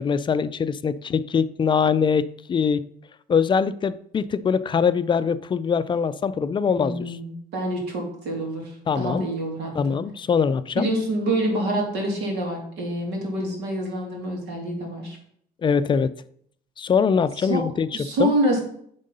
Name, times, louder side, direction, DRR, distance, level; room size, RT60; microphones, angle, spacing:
voice 1, 0.0-2.8 3.3-7.2 8.9-9.2 9.7-10.9 15.6-16.1 16.8-17.9 18.2-18.3, left 6 dB, 30° left, 0.4 m, -22 dB
voice 2, 6.7-10.0 10.8-15.2 17.5-17.6 17.9-18.6, right 1 dB, 85° right, 2.3 m, -27 dB
7.6 x 3.7 x 5.4 m
cardioid pair, 110°, 17 cm